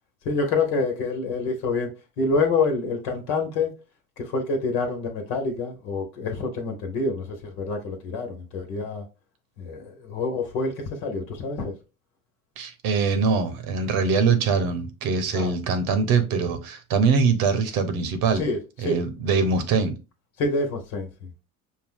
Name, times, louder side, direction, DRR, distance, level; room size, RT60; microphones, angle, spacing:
voice 1, 0.2-1.9 2.2-3.7 4.2-9.0 9.6-11.7 15.3-15.5 18.3-19.0 20.4-21.3, left 3 dB, 65° left, 1.2 m, -27 dB
voice 2, 12.6-18.4 18.8-19.9, right 5 dB, 60° right, 1.1 m, -23 dB
5.4 x 2.2 x 3.6 m
hypercardioid pair, 75°, 42 cm